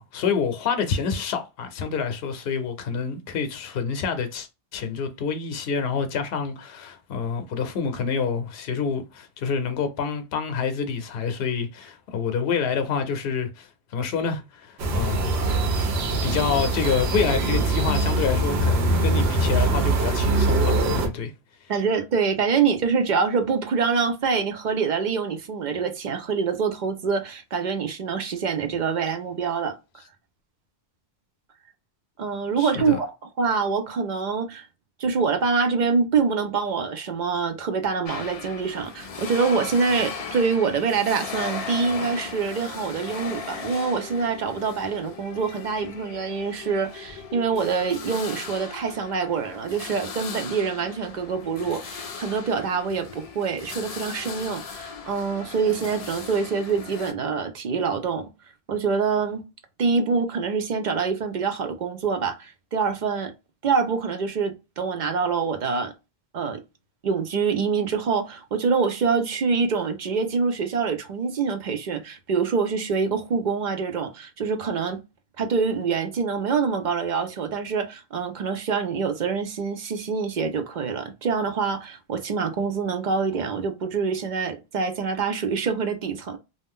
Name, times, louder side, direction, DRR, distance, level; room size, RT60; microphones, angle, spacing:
voice 1, 0.0-15.3 16.2-21.3 32.6-33.0, left 6 dB, 70° left, 0.8 m, -27 dB
sound 1, 14.8-21.1, right 2 dB, 85° right, 1.0 m, -23 dB
voice 2, 21.7-29.8 32.2-33.1 33.4-34.7 35.0-58.3 58.7-59.4 59.8-63.3 63.6-65.9 66.3-66.6 67.0-75.0 75.4-86.4, right 5 dB, 55° right, 0.6 m, -25 dB
sound 2, 38.1-57.1, left 5 dB, 50° left, 0.4 m, -37 dB
2.4 x 2.1 x 3.5 m
omnidirectional pair, 1.0 m